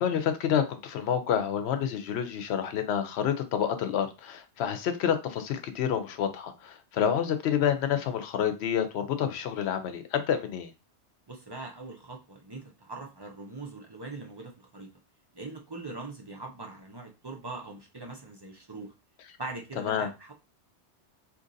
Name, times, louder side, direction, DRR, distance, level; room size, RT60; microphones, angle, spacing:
voice 1, 0.0-10.7 19.8-20.1, left 8 dB, 70° left, 9 dB, 0.9 m, -28 dB
voice 2, 11.3-14.9 15.3-18.9 19.4-20.3, right 3 dB, 35° right, 0 dB, 0.4 m, -41 dB
2.8 x 2.6 x 3.9 m, 0.28 s
omnidirectional pair, 1.2 m